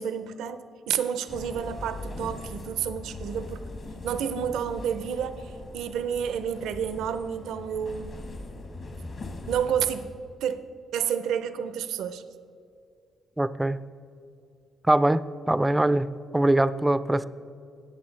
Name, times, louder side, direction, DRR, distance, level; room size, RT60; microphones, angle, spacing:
voice 1, 0.0-3.6 4.0-8.2 9.5-10.1 10.4-10.7 10.9-12.2, right 8 dB, 85° right, 12 dB, 0.5 m, -30 dB
sound 1, 1.3-10.0, left 2 dB, 50° left, 1.3 m, -40 dB
voice 2, 13.4-13.8 14.9-17.2, right 1 dB, 10° right, 15 dB, 0.3 m, -23 dB
16.5 x 6.7 x 3.2 m, 2.4 s
cardioid pair, 90°, 0 cm